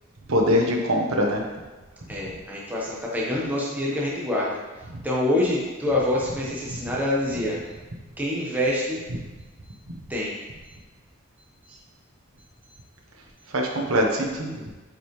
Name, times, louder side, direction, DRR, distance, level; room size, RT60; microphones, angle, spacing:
voice 1, 0.3-1.4 13.5-14.5, equal, 85° right, 0 dB, 1.2 m, -22 dB
voice 2, 2.1-4.6 5.0-7.6 8.2-9.0 10.1-10.3, left 1 dB, 10° right, -5 dB, 1.1 m, -26 dB
8.9 x 5.4 x 3.2 m, 1.2 s
head